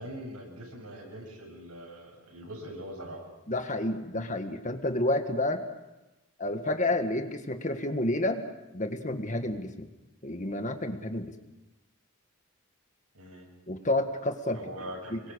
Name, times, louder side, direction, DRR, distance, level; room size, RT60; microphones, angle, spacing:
voice 1, 0.0-3.3 13.1-13.5 14.5-15.3, equal, 85° right, 1 dB, 7.8 m, -42 dB
voice 2, 3.5-5.6 6.4-8.4 8.7-9.9 10.2-11.3 13.7-14.6 15.1-15.2, left 1 dB, 35° left, 7 dB, 1.8 m, -30 dB
27.5 x 23.0 x 6.5 m, 1.0 s
head